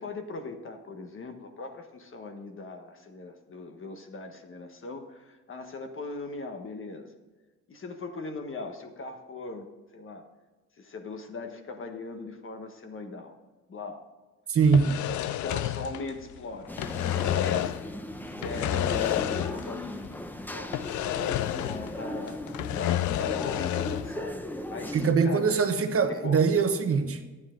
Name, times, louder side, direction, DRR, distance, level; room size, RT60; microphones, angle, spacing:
voice 1, 0.0-7.1 7.7-9.7 9.9-10.3 10.8-13.4 13.7-14.1 15.2-16.7 17.1-17.7 18.4-19.9 20.5-20.8 21.3-22.4 22.7-25.4 26.1-26.4, left 3 dB, 45° left, 6 dB, 1.5 m, -39 dB
voice 2, 14.5-14.9 24.9-27.2, right 5 dB, 50° right, 6 dB, 1.3 m, -23 dB
sound 1, 14.6-16.4 16.6-17.9 18.4-19.8 20.0-20.1 20.7-22.0 22.3-24.1, left 12 dB, 75° left, 0.5 m, -30 dB
sound 2, 16.7-25.1, left 1 dB, 5° left, 0.8 m, -37 dB
12.0 x 9.5 x 3.9 m, 1.3 s
cardioid pair, 90°, 30 cm